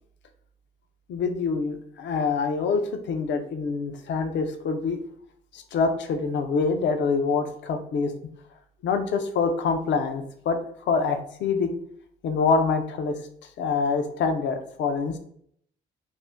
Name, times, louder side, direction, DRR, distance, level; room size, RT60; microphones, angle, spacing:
voice 1, 1.1-5.0 5.5-8.1 8.8-10.6 10.9-11.8 12.2-13.2 13.6-15.2, left 4 dB, 65° left, 7 dB, 0.5 m, -25 dB
2.6 x 2.1 x 3.4 m, 0.65 s
cardioid pair, 90°, 20 cm